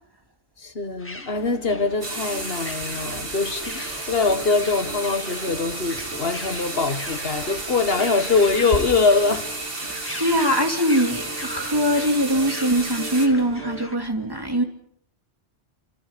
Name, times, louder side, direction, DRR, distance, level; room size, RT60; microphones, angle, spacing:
voice 1, 0.6-9.6, left 4 dB, 60° left, 1.9 m, -23 dB
sound 1, 1.0-14.0, left 1 dB, 10° left, 1.7 m, -40 dB
sound 2, 1.3-13.9, right 3 dB, 75° right, 6.0 m, -40 dB
sound 3, 2.0-13.3, right 2 dB, 60° right, 2.6 m, -33 dB
voice 2, 10.2-14.6, equal, 20° right, 2.9 m, -22 dB
29.0 x 26.5 x 5.3 m
omnidirectional pair, 1.1 m